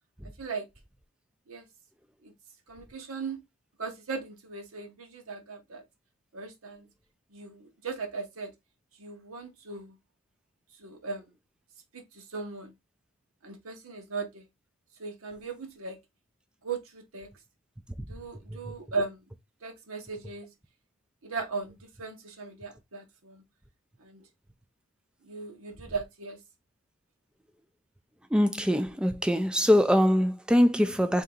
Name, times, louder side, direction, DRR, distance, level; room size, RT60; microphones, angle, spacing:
voice 1, 2.7-3.4 3.8-5.8 6.3-6.9 7.3-8.5 9.0-10.0 10.8-11.2 11.9-12.7 13.4-14.4 15.0-16.0 16.6-17.3 18.1-19.2 19.6-20.5 21.2-23.4 24.0-24.2 25.2-26.4, right 4 dB, 75° right, 1.0 m, -37 dB
voice 2, 28.3-31.2, equal, 5° right, 0.3 m, -23 dB
3.9 x 2.8 x 3.6 m
head